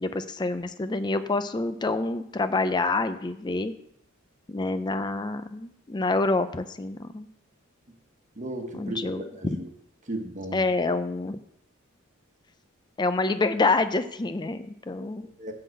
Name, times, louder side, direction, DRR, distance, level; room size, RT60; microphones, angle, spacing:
voice 1, 0.0-3.7 4.5-7.3 8.7-9.6 10.5-11.4 13.0-15.3, left 3 dB, 20° left, 9 dB, 0.5 m, -27 dB
voice 2, 8.4-9.6 10.1-10.6 15.2-15.5, right 1 dB, 35° right, 3 dB, 1.3 m, -35 dB
11.5 x 3.9 x 7.7 m, 0.76 s
head